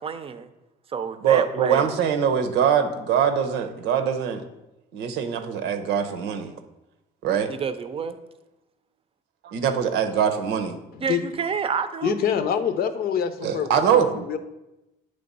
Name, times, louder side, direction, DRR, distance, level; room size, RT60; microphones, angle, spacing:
voice 1, 0.0-0.5 0.9-2.0 7.5-8.2 11.0-12.1, right 6 dB, 35° right, 11 dB, 0.6 m, -29 dB
voice 2, 1.2-4.4 4.9-6.5 7.2-7.5 9.4-10.8 13.4-14.2, right 8 dB, 90° right, 7 dB, 0.8 m, -23 dB
voice 3, 12.0-14.4, left 8 dB, 65° left, 10 dB, 0.7 m, -26 dB
8.5 x 3.3 x 5.4 m, 0.96 s
cardioid pair, 110°, 17 cm